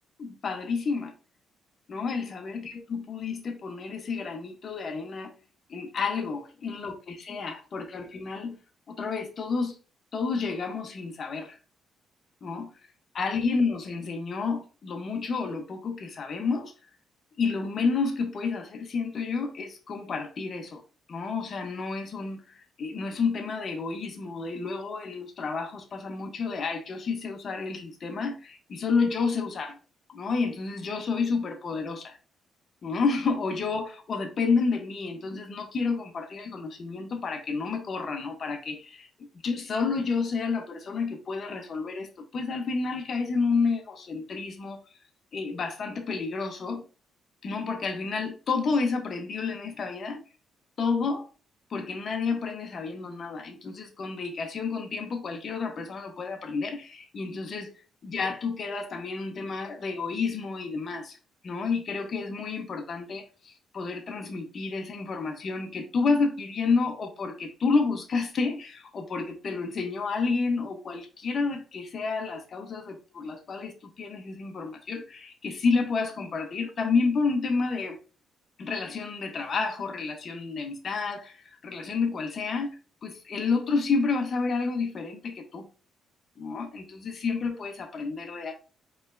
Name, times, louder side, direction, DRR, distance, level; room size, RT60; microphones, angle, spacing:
voice 1, 0.2-1.1 1.9-5.3 5.7-8.6 8.9-9.8 10.1-11.6 12.4-12.7 13.1-16.7 17.4-20.8 21.1-29.8 30.1-32.2 32.8-39.1 39.4-44.8 45.3-46.8 47.4-50.2 50.8-51.3 51.7-57.7 58.0-61.2 61.4-78.0 78.6-85.7 86.4-88.5, left 4 dB, 50° left, 0.8 m, -30 dB
4.2 x 3.2 x 2.5 m
cardioid pair, 90°, 0 cm